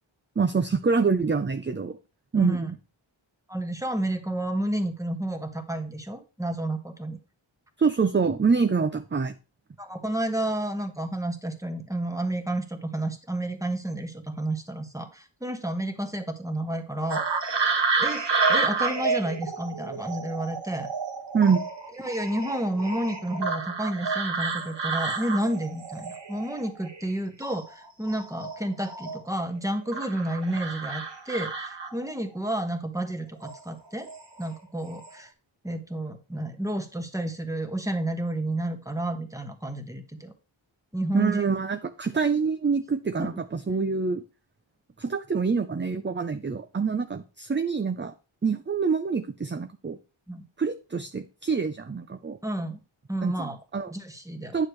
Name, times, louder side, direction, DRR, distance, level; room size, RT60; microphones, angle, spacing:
voice 1, 0.4-2.0 2.3-2.7 7.8-9.3 21.3-21.6 41.1-44.2 45.0-48.1 48.4-50.0 50.6-52.4 53.2-53.9 54.5-54.7, right 5 dB, 25° right, 9 dB, 0.5 m, -26 dB
voice 2, 2.4-2.7 3.5-7.2 9.8-17.2 18.0-20.9 22.0-34.1 34.4-35.3 35.6-40.3 40.9-41.4 43.2-43.4 50.3-50.4 52.4-52.8 53.1-53.6 53.9-54.7, right 1 dB, 5° right, 6 dB, 1.3 m, -31 dB
sound 1, 17.1-27.1 27.4-29.4 29.9-32.2 33.4-33.6 34.1-34.5 34.8-35.1, right 4 dB, 60° right, 1.2 m, -30 dB
9.6 x 6.5 x 3.1 m, 0.31 s
wide cardioid pair, 55°, 48 cm